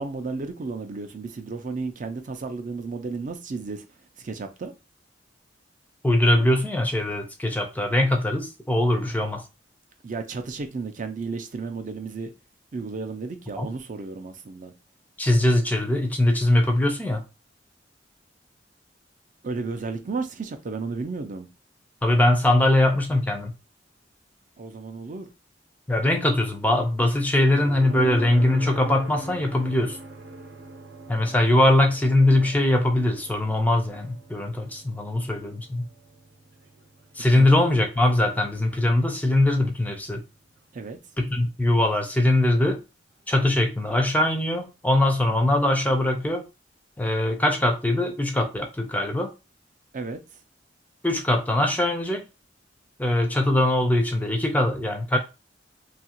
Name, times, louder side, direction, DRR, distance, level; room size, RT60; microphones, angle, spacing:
voice 1, 0.0-3.8 4.2-4.7 10.0-12.3 12.7-14.7 19.4-21.5 24.6-25.3 37.3-37.5 40.7-41.0 49.9-50.2, right 4 dB, 45° right, 0.4 m, -33 dB
voice 2, 6.0-9.4 13.6-13.7 15.2-17.2 22.0-23.5 25.9-30.0 31.1-35.8 37.2-40.2 41.2-42.8 43.3-46.4 47.0-49.3 51.0-52.2 53.0-55.2, left 1 dB, 10° left, 0.4 m, -21 dB
sound 1, 27.6-41.4 43.6-43.7, right 1 dB, 75° right, 0.8 m, -42 dB
2.7 x 2.4 x 2.9 m
head